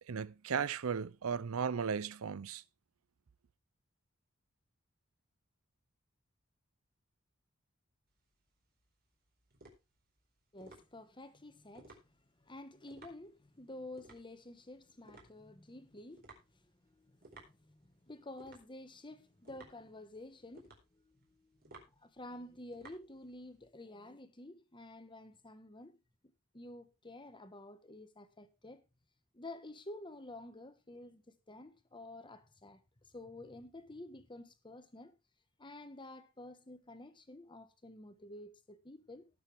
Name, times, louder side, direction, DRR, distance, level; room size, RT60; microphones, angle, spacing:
voice 1, 0.0-2.6, right 6 dB, 80° right, 0.5 m, -36 dB
sound 1, 8.1-23.7, right 2 dB, 45° right, 4.4 m, -59 dB
voice 2, 10.5-12.0 12.4-16.4 16.8-26.0 26.5-28.8 29.3-35.1 35.6-39.3, left 1 dB, 25° left, 1.3 m, -51 dB
18.5 x 6.9 x 3.5 m
head